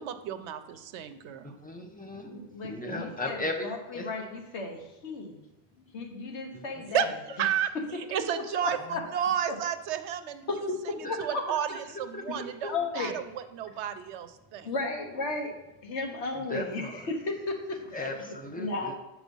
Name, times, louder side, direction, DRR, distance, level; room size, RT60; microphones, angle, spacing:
voice 1, 0.0-1.6 6.9-10.7 10.9-14.7, right 9 dB, 90° right, 10 dB, 0.9 m, -32 dB
voice 2, 1.4-4.1 6.5-6.8 8.9-9.0 11.0-11.2 12.1-12.7 16.3-17.1 17.9-18.9, left 2 dB, 10° left, 2 dB, 0.7 m, -37 dB
voice 3, 2.2-5.4 5.9-7.1 8.3-9.0 9.5-9.6 10.5-11.4 12.3-12.4 12.7-13.1 14.6-15.5 15.8-18.1 18.6-18.9, left 3 dB, 85° left, 2 dB, 1.4 m, -34 dB
7.1 x 4.8 x 5.3 m, 0.98 s
omnidirectional pair, 1.1 m